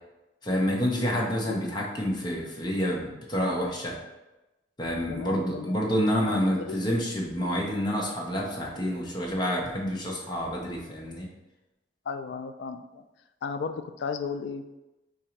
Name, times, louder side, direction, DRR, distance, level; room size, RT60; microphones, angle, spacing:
voice 1, 0.4-4.0 4.8-11.3, equal, 25° left, -2 dB, 0.8 m, -28 dB
voice 2, 5.1-5.8 6.3-6.8 12.1-13.0 13.4-14.6, left 5 dB, 70° left, 9 dB, 0.3 m, -35 dB
3.9 x 2.6 x 4.4 m, 1.0 s
head